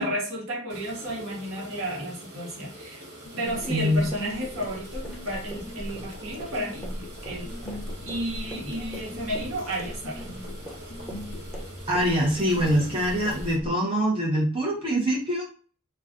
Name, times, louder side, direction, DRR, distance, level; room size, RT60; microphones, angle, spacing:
voice 1, 0.0-3.0 3.4-6.9 7.2-7.5 8.0-10.2, equal, 70° right, -2 dB, 1.0 m, -32 dB
sound 1, 0.7-13.6, right 1 dB, 50° right, 1.3 m, -45 dB
sound 2, 3.3-13.5, left 2 dB, 60° left, 0.5 m, -44 dB
sound 3, 3.4-13.7, equal, ahead, 1.0 m, -40 dB
voice 2, 3.7-4.1 11.9-15.5, equal, 25° right, -4 dB, 0.8 m, -24 dB
2.4 x 2.3 x 3.5 m, 0.39 s
head